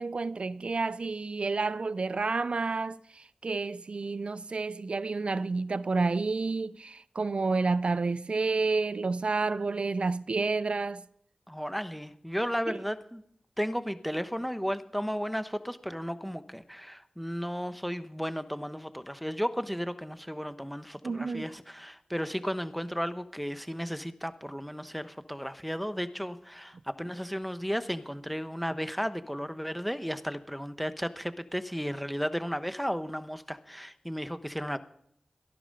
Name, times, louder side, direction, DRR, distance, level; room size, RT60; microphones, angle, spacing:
voice 1, 0.0-11.0 12.7-12.8 21.0-21.5, right 3 dB, 60° right, 0.5 m, -30 dB
voice 2, 11.5-13.2 13.6-34.8, equal, ahead, 1.1 m, -34 dB
18.0 x 11.0 x 5.4 m
cardioid pair, 50°, 2 cm